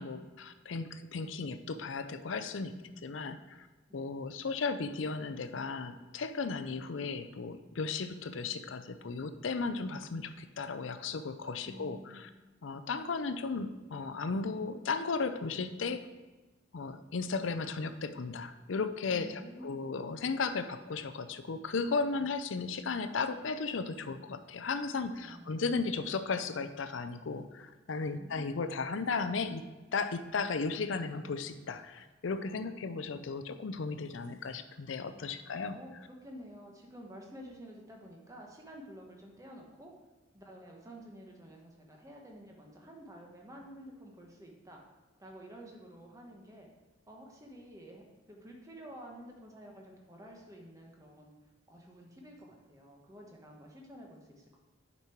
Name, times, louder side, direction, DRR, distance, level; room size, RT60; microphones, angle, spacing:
voice 1, 0.0-2.7 3.0-3.7 3.9-12.3 12.6-16.1 16.7-29.6 29.9-35.8, left 4 dB, 75° left, 11 dB, 0.5 m, -35 dB
voice 2, 2.5-3.1 3.9-4.1 11.6-12.3 19.1-19.9 22.1-22.3 25.2-25.9 28.0-28.5 35.2-39.9 40.3-44.8 45.2-46.7 47.1-51.3 51.7-54.6, equal, 15° right, 0 dB, 1.2 m, -51 dB
8.3 x 5.4 x 4.5 m, 1.2 s
head